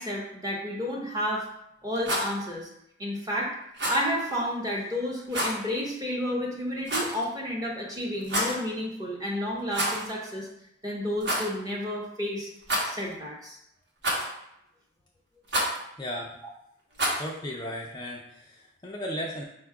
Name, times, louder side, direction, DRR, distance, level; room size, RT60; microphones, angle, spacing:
voice 1, 0.0-1.4 1.8-2.7 3.0-3.5 3.9-10.5 10.8-12.5 12.9-13.6, equal, 20° right, -3 dB, 0.8 m, -31 dB
Rattle, 1.9-2.3 3.7-4.0 5.3-5.6 6.8-7.2 8.2-8.6 9.7-10.1 10.4-10.5 11.2-11.5 12.6-13.1 14.0-14.4 15.5-15.8 16.9-17.3, right 1 dB, 70° right, 1.1 m, -28 dB
voice 2, 16.0-16.4 17.2-19.4, equal, 20° left, -2 dB, 0.4 m, -35 dB
4.3 x 2.3 x 4.6 m, 0.79 s
head